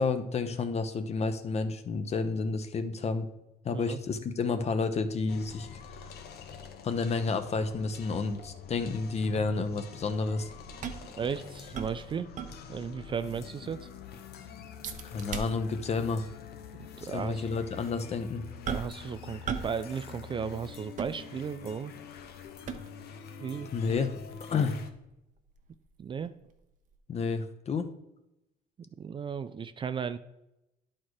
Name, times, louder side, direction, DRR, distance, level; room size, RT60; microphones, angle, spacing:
voice 1, 0.0-3.3 3.6-5.7 6.0-6.1 6.8-10.5 15.0-16.2 17.0-18.4 23.7-24.8 27.1-27.9, left 4 dB, 40° left, 9 dB, 0.8 m, -30 dB
sound 1, 5.3-24.9, left 7 dB, 70° left, 0.9 m, -46 dB
sound 2, 10.6-12.9 13.3-13.4 13.8-14.2 14.8-15.9 16.2-16.4 17.1-17.2 18.7-19.1 19.5-19.8 20.1-21.7 22.2-23.1 23.7-26.5 26.9-27.0, right 6 dB, 50° right, 0.8 m, -39 dB
voice 2, 11.2-12.3 12.7-13.9 17.0-17.6 18.7-21.9 23.4-23.7 26.0-26.3 29.0-30.2, right 6 dB, 30° right, 12 dB, 0.4 m, -35 dB
11.0 x 4.4 x 4.8 m, 0.90 s
cardioid pair, 110°, 17 cm